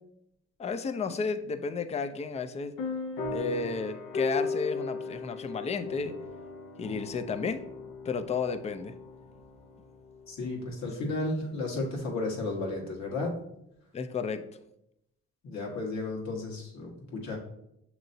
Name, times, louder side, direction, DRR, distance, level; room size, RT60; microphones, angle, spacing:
voice 1, 0.6-2.7 3.3-6.1 6.8-7.6 8.0-8.9 13.9-14.4, left 5 dB, 25° left, 10 dB, 0.3 m, -32 dB
sound 1, 2.8-10.9, left 3 dB, 85° left, 0.6 m, -37 dB
voice 2, 10.3-13.4 15.4-17.4, left 2 dB, 65° left, -2 dB, 1.4 m, -33 dB
6.6 x 3.0 x 2.6 m, 0.80 s
cardioid pair, 90°, 30 cm